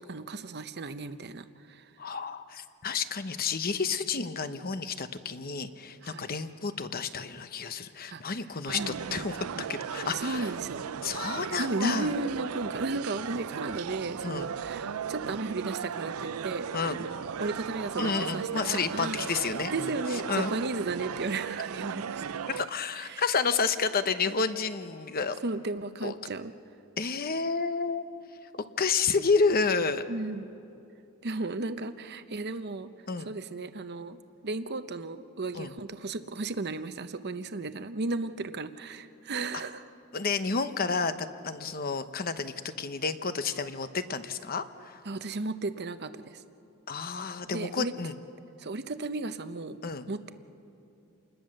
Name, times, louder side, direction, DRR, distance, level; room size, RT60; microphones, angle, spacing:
voice 1, 0.1-1.9 6.0-6.3 8.1-8.2 8.7-9.2 10.1-10.8 11.6-19.1 19.7-22.4 23.0-23.2 25.4-26.5 30.1-30.5 31.2-32.9 33.2-34.2 34.4-39.8 45.0-46.4 47.5-47.9 48.6-49.8 50.1-50.3, right 3 dB, 50° right, 10 dB, 0.8 m, -34 dB
voice 2, 2.0-10.5 11.0-12.1 14.2-14.5 16.7-17.0 18.0-19.9 20.3-20.5 22.5-25.4 26.0-26.2 27.0-28.0 28.5-30.0 33.1-33.3 35.5-35.7 40.1-45.0 46.9-48.2 49.8-50.1, left 5 dB, 45° left, 10 dB, 0.9 m, -30 dB
sound 1, 8.7-22.7, right 7 dB, 80° right, 0.5 m, -36 dB
28.5 x 21.0 x 6.6 m, 2.7 s
head